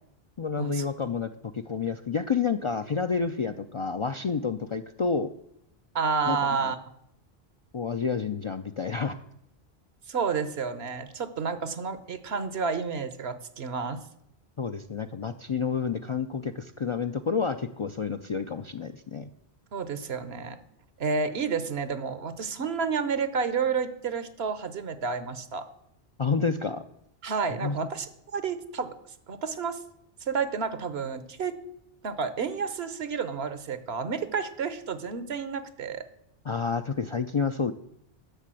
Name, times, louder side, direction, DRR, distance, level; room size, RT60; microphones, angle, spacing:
voice 1, 0.4-1.3 1.5-5.3 6.3-6.7 7.7-9.1 14.6-19.3 26.2-26.8 27.6-27.8 36.4-37.7, left 5 dB, 50° left, 9 dB, 0.3 m, -29 dB
voice 2, 5.9-6.8 10.1-14.0 19.7-20.6 21.0-25.7 27.2-28.9 29.3-29.8 30.3-31.6 32.0-36.0, right 5 dB, 75° right, 13 dB, 1.2 m, -30 dB
11.5 x 6.6 x 7.6 m, 0.77 s
omnidirectional pair, 1.0 m